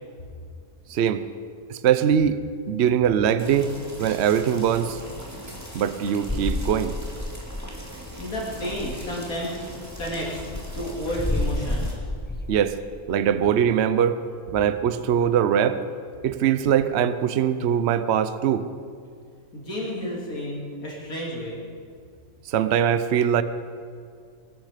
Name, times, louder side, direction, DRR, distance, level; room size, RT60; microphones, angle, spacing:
voice 1, 0.9-1.2 1.7-2.4 2.7-3.7 4.0-5.0 5.7-6.9 12.5-12.8 13.1-14.2 14.5-15.8 16.2-18.7 22.5-23.4, right 9 dB, 55° right, 12 dB, 0.9 m, -22 dB
sound 1, 3.4-11.9, right 1 dB, 10° right, 2.5 m, -40 dB
sound 2, 6.3-7.9 8.2-8.3 8.6-9.0 9.6-12.6, left 1 dB, 10° left, 0.5 m, -30 dB
voice 2, 8.2-9.6 10.0-12.0 19.5-21.6, equal, 85° left, -5 dB, 3.7 m, -31 dB
22.0 x 13.0 x 5.1 m, 2.3 s
omnidirectional pair, 1.5 m